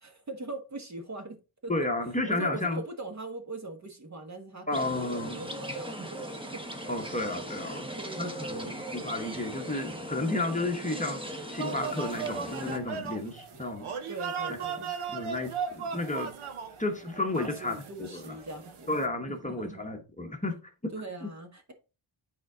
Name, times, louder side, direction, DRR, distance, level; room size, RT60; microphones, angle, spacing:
voice 1, 0.0-1.8 2.3-6.2 6.5-6.6 7.7-8.8 14.1-14.9 17.1-18.9 19.3-19.9 20.9-21.7, right 2 dB, 35° right, 1.5 m, -41 dB
voice 2, 1.7-2.8 4.7-5.4 6.9-7.9 8.2-13.9 15.1-16.3 16.8-18.4 18.9-20.9 21.2-21.3, left 2 dB, 15° left, 1.1 m, -32 dB
sound 1, 4.7-12.8, right 1 dB, 10° right, 1.2 m, -39 dB
sound 2, 11.6-19.1, right 6 dB, 85° right, 1.3 m, -37 dB
9.4 x 4.5 x 3.7 m
wide cardioid pair, 140°, 49 cm